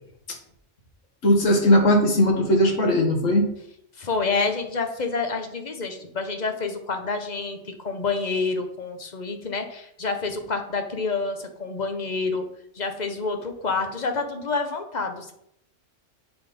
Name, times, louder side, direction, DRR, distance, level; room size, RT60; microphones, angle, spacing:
voice 1, 1.2-3.5, equal, 85° left, 2 dB, 1.9 m, -19 dB
voice 2, 4.0-12.4 12.7-15.3, left 4 dB, 35° left, 5 dB, 1.1 m, -28 dB
9.2 x 4.0 x 5.2 m, 0.73 s
omnidirectional pair, 1.3 m